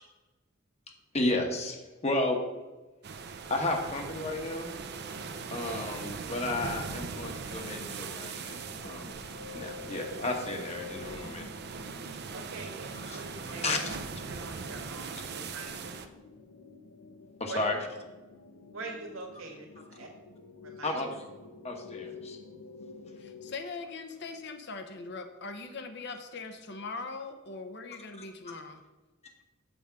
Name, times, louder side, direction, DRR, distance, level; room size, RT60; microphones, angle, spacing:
voice 1, 1.1-2.4 3.5-4.7 5.5-9.1 9.5-11.5 12.9-13.2 13.6-14.0 17.4-17.8 20.8-21.1 21.6-22.4, left 2 dB, 30° left, 3 dB, 1.2 m, -32 dB
sound 1, 3.0-16.1, right 5 dB, 55° right, 0.6 m, -40 dB
sound 2, 5.3-23.5, left 4 dB, 80° left, 0.8 m, -50 dB
voice 2, 12.3-13.6 14.3-15.9 17.5-17.7 18.7-20.1 20.6-21.0, right 3 dB, 85° right, 1 dB, 1.8 m, -44 dB
voice 3, 23.2-28.8, left 4 dB, 55° left, 7 dB, 0.9 m, -41 dB
7.1 x 5.0 x 7.0 m, 1.1 s
head